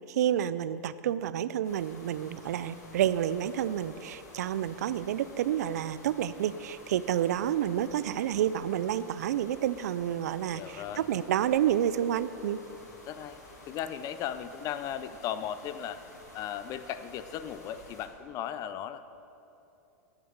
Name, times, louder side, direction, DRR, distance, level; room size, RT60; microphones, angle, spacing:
voice 1, 0.1-12.6, right 10 dB, 75° right, 15 dB, 0.4 m, -29 dB
sound 1, 1.6-18.1, left 1 dB, 85° left, 2.6 m, -52 dB
voice 2, 10.5-11.1 13.0-13.4 13.7-16.0 16.3-19.0, left 10 dB, 40° left, 12 dB, 0.6 m, -36 dB
10.5 x 6.8 x 8.0 m, 2.9 s
hypercardioid pair, 105°, 9 cm